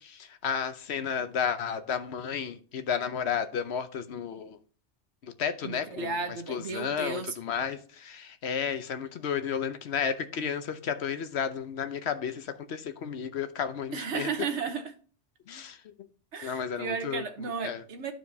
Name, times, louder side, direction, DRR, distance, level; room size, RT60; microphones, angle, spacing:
voice 1, 0.0-4.6 5.2-6.2 6.5-14.3 15.5-15.9 16.4-17.8, left 7 dB, 70° left, 1.0 m, -32 dB
voice 2, 5.6-7.3 13.9-14.9 16.3-18.1, right 5 dB, 80° right, 1.4 m, -34 dB
12.5 x 4.7 x 2.8 m
omnidirectional pair, 1.2 m